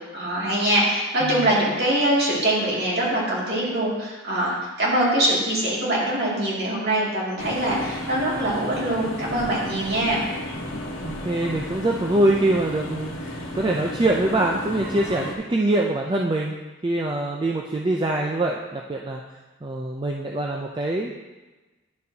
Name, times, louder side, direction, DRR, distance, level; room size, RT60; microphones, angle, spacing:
voice 1, 0.1-4.5 4.8-10.2, right 1 dB, 50° right, -6 dB, 2.4 m, -23 dB
voice 2, 1.2-1.5 11.0-16.5 16.8-19.2 19.6-21.1, right 1 dB, 20° right, 0 dB, 0.4 m, -24 dB
sound 1, 7.4-15.3, left 1 dB, 70° left, 1.2 m, -34 dB
10.5 x 6.7 x 2.8 m, 1.2 s
head